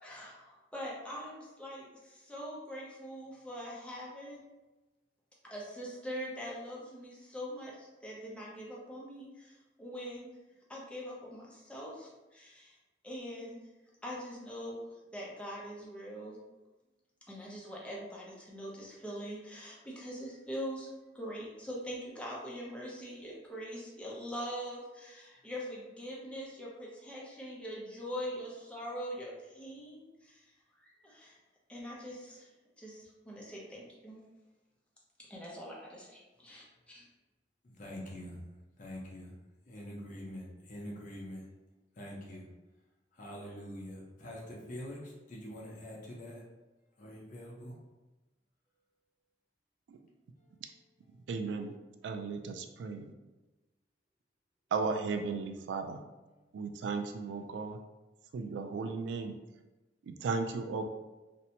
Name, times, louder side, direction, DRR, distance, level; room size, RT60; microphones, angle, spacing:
voice 1, 0.0-4.4 5.4-10.3 10.7-12.8 13.0-13.6 14.0-14.8 15.1-16.4 17.3-30.4 30.8-31.4 31.7-32.5 32.8-34.2 35.2-37.1, equal, 5° left, -5 dB, 0.6 m, -43 dB
voice 2, 37.6-38.4 38.8-39.3 39.7-41.4 42.0-42.5 43.1-46.4 47.0-47.7 50.4-50.5 56.3-56.5, equal, 45° left, -3 dB, 0.7 m, -45 dB
voice 3, 51.3-51.7 52.0-53.1 54.7-56.0 56.5-57.8 58.3-59.3 60.0-60.8, right 4 dB, 85° right, 6 dB, 0.3 m, -35 dB
2.6 x 2.1 x 2.8 m, 1.1 s
head